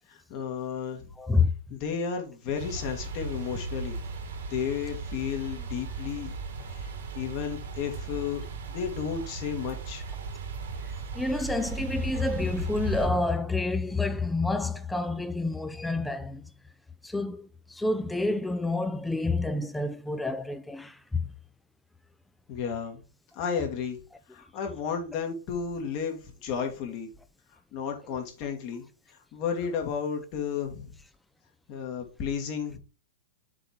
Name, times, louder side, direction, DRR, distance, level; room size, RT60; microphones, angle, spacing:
voice 1, 0.1-1.1 1.7-4.0 4.5-6.3 6.7-8.4 8.7-10.0 22.5-23.0 23.3-24.0 24.3-27.1 27.7-31.0 31.7-32.8, left 7 dB, 45° left, 2.1 m, -33 dB
voice 2, 1.2-1.5 11.1-16.4 17.0-21.2, left 3 dB, 5° left, 0.6 m, -28 dB
sound 1, 2.5-13.1, right 4 dB, 70° right, 1.8 m, -37 dB
7.5 x 3.6 x 4.5 m
hypercardioid pair, 110°, 0 cm